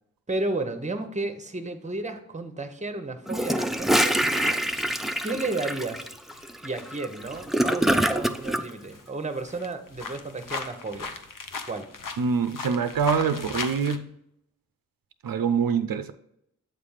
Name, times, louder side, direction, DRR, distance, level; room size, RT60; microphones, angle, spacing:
voice 1, 0.3-4.1 5.2-6.1 6.6-11.1 11.7-11.9, right 2 dB, 20° right, 0.8 m, -32 dB
Gurgling / Toilet flush, 3.3-8.6, right 1 dB, ahead, 0.4 m, -25 dB
sound 1, 4.0-9.1 9.4-14.0, left 4 dB, 70° left, 0.7 m, -39 dB
voice 2, 4.3-4.6 12.2-14.1 15.2-16.1, right 6 dB, 90° right, 0.5 m, -25 dB
7.7 x 3.3 x 5.6 m
wide cardioid pair, 65°, 34 cm